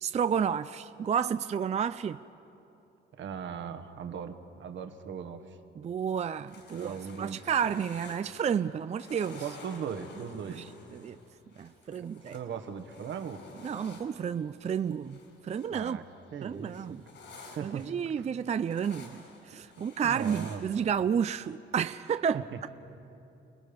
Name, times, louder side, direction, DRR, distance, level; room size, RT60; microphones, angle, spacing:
voice 1, 0.0-2.2 5.8-6.9 7.2-9.4 10.5-10.6 10.9-11.2 11.6-12.3 13.6-16.0 16.4-17.0 17.6-22.4, right 7 dB, 35° right, 0.4 m, -31 dB
voice 2, 3.1-5.6 6.7-7.4 9.3-10.7 12.0-13.4 15.7-16.0 16.3-17.0 17.5-17.9 18.2-18.3 19.8-20.7 22.3-22.7, right 7 dB, 70° right, 1.5 m, -39 dB
sound 1, 6.5-8.7 9.0-15.8 16.1-21.0, left 3 dB, 65° left, 5.4 m, -52 dB
30.0 x 19.5 x 5.3 m
cardioid pair, 90°, 20 cm